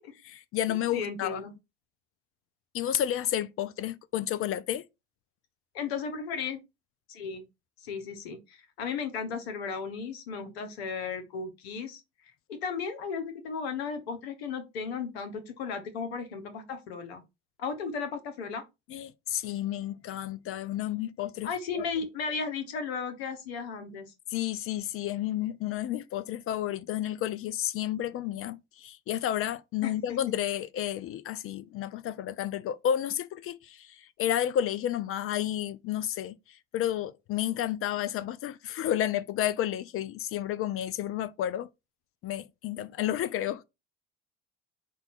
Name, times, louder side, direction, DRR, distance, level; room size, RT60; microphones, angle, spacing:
voice 1, 0.3-1.4 2.7-4.8 18.9-21.5 21.8-21.9 24.3-36.3 36.7-41.7 42.2-43.6, left 11 dB, 45° left, 0.4 m, -31 dB
voice 2, 0.9-1.5 5.7-6.6 7.1-7.4 7.8-17.2 17.6-18.6 21.4-24.1 29.8-30.2, left 5 dB, 85° left, 0.8 m, -35 dB
5.2 x 2.3 x 4.1 m
hypercardioid pair, 70°, 31 cm